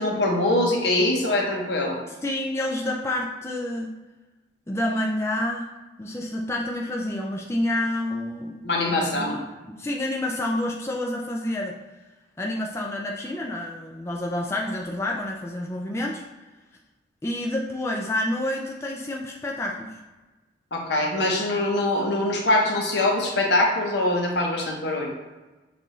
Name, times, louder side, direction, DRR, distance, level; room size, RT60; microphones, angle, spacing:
voice 1, 0.0-2.0 8.6-9.4 20.7-25.1, left 1 dB, 70° left, 0 dB, 0.9 m, -23 dB
voice 2, 2.1-3.9 4.7-5.7 6.0-8.6 8.9-9.3 9.6-11.8 12.4-16.2 17.2-20.0, left 1 dB, 15° left, -1 dB, 0.3 m, -28 dB
6.6 x 2.6 x 3.1 m, 1.2 s
head